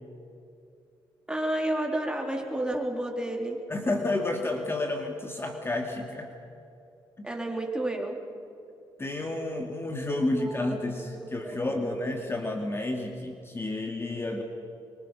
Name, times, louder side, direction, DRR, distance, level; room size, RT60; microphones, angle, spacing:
voice 1, 1.3-3.6 7.2-8.2 10.4-11.9, right 1 dB, 10° right, 1 dB, 3.6 m, -31 dB
voice 2, 3.7-6.3 9.0-14.4, left 2 dB, 25° left, 3 dB, 2.3 m, -30 dB
24.0 x 23.5 x 5.8 m, 2.7 s
cardioid pair, 80°, 9 cm